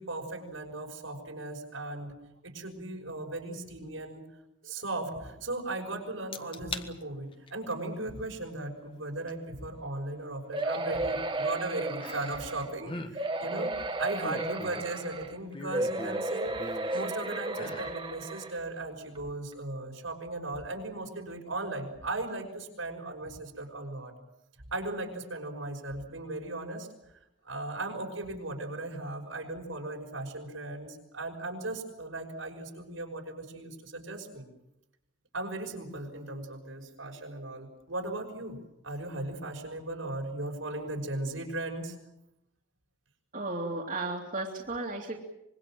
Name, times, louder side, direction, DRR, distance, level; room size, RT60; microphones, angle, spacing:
voice 1, 0.0-2.2 2.4-4.2 4.6-13.7 14.0-16.6 16.9-24.1 24.7-26.9 27.4-34.5 35.3-38.6 38.8-42.0, right 2 dB, 85° right, 2 dB, 5.9 m, -37 dB
sound 1, 6.3-6.9 7.3-7.7 9.3-9.4 12.0-12.5 12.8-13.1 13.9-15.0 15.5-17.0 17.5-18.0 18.4-18.5, left 2 dB, 25° left, 1.5 m, -41 dB
sound 2, 10.5-12.7 13.1-15.3 15.7-18.6 19.1-19.2 19.5-19.6, right 2 dB, 25° right, 1.6 m, -33 dB
voice 2, 43.3-45.2, right 2 dB, 40° right, 0 dB, 2.6 m, -34 dB
25.0 x 22.5 x 7.6 m, 0.87 s
head